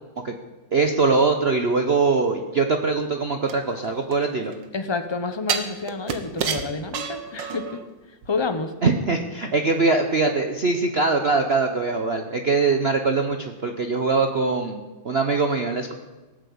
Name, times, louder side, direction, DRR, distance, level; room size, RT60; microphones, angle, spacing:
voice 1, 0.7-4.5 8.8-14.8 15.0-15.9, right 3 dB, 45° right, 5 dB, 0.9 m, -22 dB
sound 1, 3.5-4.6 5.5-7.8 8.2-8.3, right 6 dB, 75° right, 1.9 m, -29 dB
voice 2, 4.7-7.6 8.3-8.7, left 4 dB, 30° left, 8 dB, 0.5 m, -28 dB
18.0 x 7.8 x 8.5 m, 1.2 s
omnidirectional pair, 2.0 m